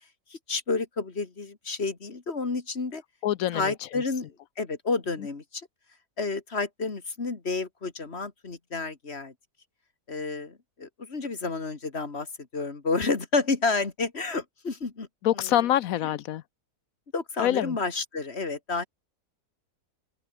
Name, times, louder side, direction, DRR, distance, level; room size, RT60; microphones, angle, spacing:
voice 1, 0.3-3.0 3.5-5.7 6.2-9.3 10.1-15.1 15.3-15.7 17.1-18.9, left 4 dB, 40° left, 2.4 m, -30 dB
voice 2, 3.2-3.7 15.2-16.4 17.4-17.8, left 12 dB, 70° left, 1.0 m, -25 dB
open air
omnidirectional pair, 1.7 m